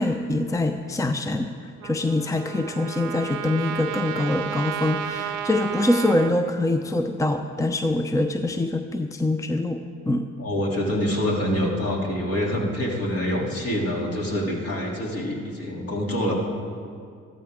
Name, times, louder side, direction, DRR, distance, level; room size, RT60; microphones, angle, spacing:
voice 1, 0.0-9.8 10.1-10.3, left 2 dB, 10° left, 7 dB, 0.6 m, -24 dB
Trumpet, 1.8-6.3, right 9 dB, 85° right, 0.6 m, -32 dB
voice 2, 10.4-16.3, equal, 50° left, -3 dB, 2.9 m, -26 dB
14.0 x 13.0 x 3.7 m, 2.3 s
supercardioid pair, 60°, 30 cm